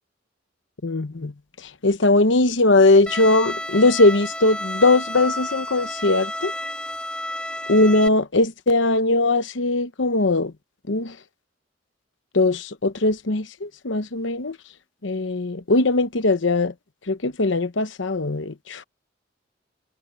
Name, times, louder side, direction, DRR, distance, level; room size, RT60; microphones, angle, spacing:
voice 1, 0.8-1.3 1.6-6.5 7.7-10.5 10.9-11.2 12.3-14.6 15.0-16.7 17.1-18.8, left 2 dB, 75° left, 1.0 m, -20 dB
Bowed string instrument, 3.1-8.1, left 1 dB, 5° left, 2.9 m, -31 dB
head